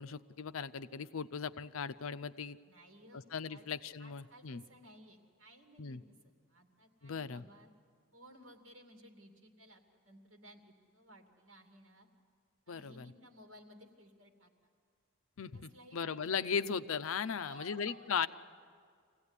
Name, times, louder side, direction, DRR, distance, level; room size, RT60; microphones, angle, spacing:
voice 1, 0.0-2.6 3.1-4.6 5.8-6.0 7.0-7.4 12.7-13.1 15.4-18.3, left 6 dB, 75° left, 12 dB, 0.6 m, -38 dB
voice 2, 2.7-3.7 4.0-7.7 8.1-12.1 12.7-14.5 15.5-16.5 17.3-18.3, equal, 65° right, 3 dB, 2.6 m, -57 dB
25.0 x 16.5 x 9.8 m, 2.1 s
head